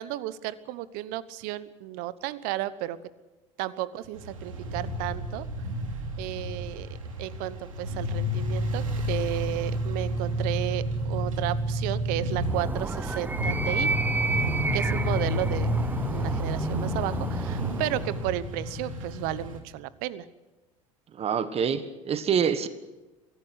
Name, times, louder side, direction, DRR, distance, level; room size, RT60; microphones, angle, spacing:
voice 1, 0.0-3.0 3.6-5.4 6.2-6.9 7.2-13.9 14.7-15.7 16.1-20.2, right 14 dB, 60° right, 17 dB, 1.1 m, -33 dB
sound 1, 4.1-19.6, equal, 90° right, 2.7 m, -30 dB
Animal, 12.4-18.3, right 3 dB, 10° right, 0.8 m, -31 dB
voice 2, 21.1-22.7, right 7 dB, 35° right, 12 dB, 1.5 m, -26 dB
23.5 x 16.0 x 8.3 m, 1.1 s
hypercardioid pair, 75°, 17 cm